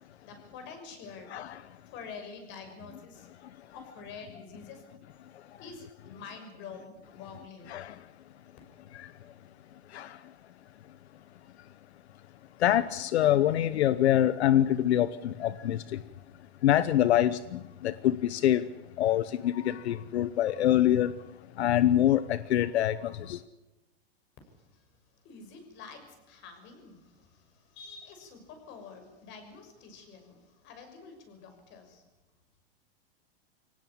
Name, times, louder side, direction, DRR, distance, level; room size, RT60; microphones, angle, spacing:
voice 1, 0.0-1.4 1.9-3.3 3.7-4.8 5.6-7.7 24.4-32.0, left 5 dB, 35° left, 6.3 m, -47 dB
voice 2, 12.6-15.8 16.6-18.6 19.0-21.1 21.6-23.4, left 12 dB, 85° left, 1.0 m, -25 dB
23.5 x 18.0 x 8.7 m
supercardioid pair, 155°, 32 cm